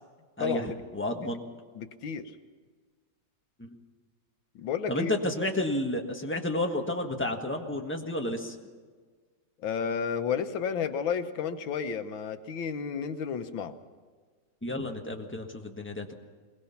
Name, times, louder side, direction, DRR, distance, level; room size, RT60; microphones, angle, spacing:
voice 1, 0.4-0.8 1.8-2.3 4.6-5.1 9.6-13.7, left 7 dB, 90° left, 9 dB, 1.8 m, -31 dB
voice 2, 0.9-1.4 3.6-3.7 4.9-8.5 14.6-16.1, left 1 dB, 5° left, 2 dB, 1.3 m, -31 dB
21.5 x 21.0 x 5.8 m, 1.5 s
omnidirectional pair, 2.1 m